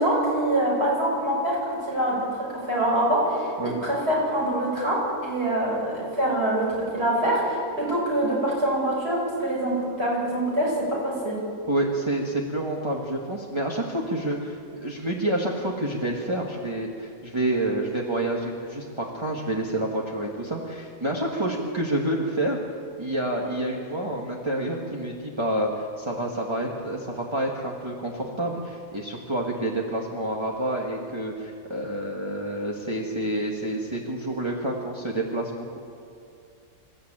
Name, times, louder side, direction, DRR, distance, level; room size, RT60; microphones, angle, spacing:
voice 1, 0.0-11.4 21.3-21.5, right 1 dB, 40° right, -4 dB, 7.8 m, -25 dB
voice 2, 11.7-22.6 23.0-25.7 26.0-35.5, right 1 dB, 20° right, -3 dB, 1.9 m, -28 dB
27.5 x 14.0 x 9.0 m, 2.4 s
omnidirectional pair, 1.6 m